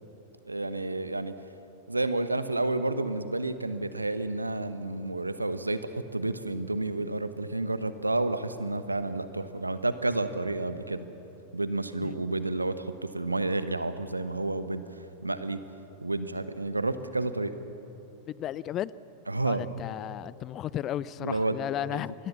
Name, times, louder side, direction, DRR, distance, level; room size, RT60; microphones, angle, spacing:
voice 1, 0.5-1.3 1.9-11.0 11.5-14.8 15.2-15.6 16.0-17.5 19.3-19.7 21.2-21.6 21.9-22.0, right 2 dB, 85° right, 12 dB, 1.1 m, -30 dB
voice 2, 18.3-18.9 19.5-22.1, left 12 dB, 30° left, 21 dB, 0.5 m, -34 dB
25.5 x 21.0 x 7.3 m, 2.9 s
figure-of-eight pair, 90°, 0 cm